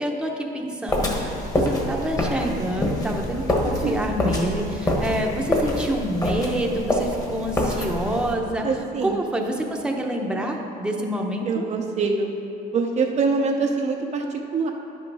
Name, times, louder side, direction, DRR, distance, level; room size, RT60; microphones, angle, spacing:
voice 1, 0.0-8.7 9.0-11.6, equal, 5° right, 0 dB, 0.9 m, -27 dB
sound 1, 0.9-8.3, left 1 dB, 20° left, 1.4 m, -26 dB
voice 2, 8.6-9.2 11.4-12.3 12.7-14.7, right 4 dB, 45° right, 2 dB, 0.7 m, -24 dB
10.0 x 6.2 x 4.8 m, 2.8 s
cardioid pair, 110°, 17 cm